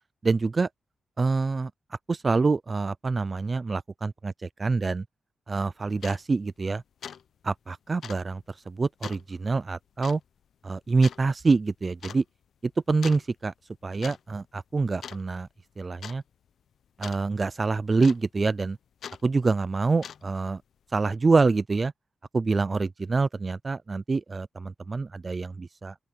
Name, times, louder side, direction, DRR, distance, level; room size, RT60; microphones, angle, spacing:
voice 1, 0.2-0.7 1.2-1.7 2.1-5.0 5.5-6.8 7.4-10.2 10.6-12.2 12.9-13.5 13.8-15.5 15.8-16.2 17.0-18.8 19.2-20.6 20.9-21.9 22.3-26.0, right 4 dB, 25° right, 0.3 m, -26 dB
sound 1, 5.5-5.6 6.0-6.2 6.6-6.8 7.0-7.2 7.5-7.6 8.0-8.2 9.0-9.2 10.0-10.2 11.0-11.2 12.0-12.2 13.0-13.3 13.8-14.2 14.4-14.7 15.0-15.5 16.0-16.2 17.0-17.2 18.0-18.4 19.0-19.2 19.9-20.4, left 8 dB, 70° left, 0.7 m, -41 dB
open air
wide cardioid pair, 155°, 0 cm